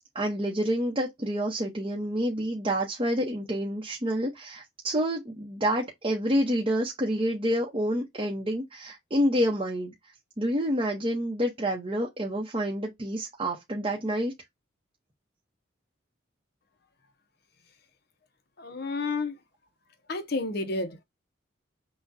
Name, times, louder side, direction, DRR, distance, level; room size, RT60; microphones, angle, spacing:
voice 1, 0.1-9.9 10.4-14.3, equal, 25° right, 0.8 m, -28 dB
voice 2, 18.6-19.3 20.1-21.0, left 3 dB, 55° left, 0.7 m, -30 dB
5.9 x 2.3 x 2.7 m
head